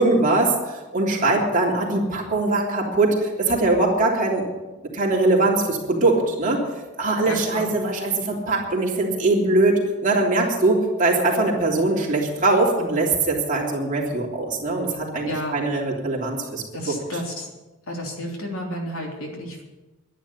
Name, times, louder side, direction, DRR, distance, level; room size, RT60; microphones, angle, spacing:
voice 1, 0.0-4.4 4.9-6.6 7.0-16.6, right 2 dB, 35° right, -2 dB, 3.2 m, -21 dB
voice 2, 7.2-7.7 15.3-15.7 16.7-17.5 17.9-19.6, left 1 dB, 70° left, 0 dB, 3.4 m, -31 dB
11.5 x 11.0 x 8.6 m, 1.1 s
head